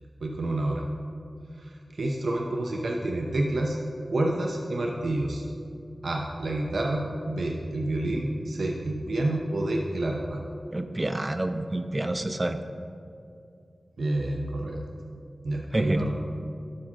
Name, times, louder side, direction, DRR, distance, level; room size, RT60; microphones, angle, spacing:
voice 1, 0.2-0.8 1.5-3.8 4.1-5.5 6.0-10.4 14.0-14.9 15.4-16.1, right 1 dB, 75° right, 0 dB, 0.6 m, -28 dB
voice 2, 10.7-12.6 15.7-16.0, right 1 dB, 25° right, 8 dB, 0.4 m, -28 dB
10.5 x 6.2 x 3.8 m, 2.5 s
wide cardioid pair, 90°, 0 cm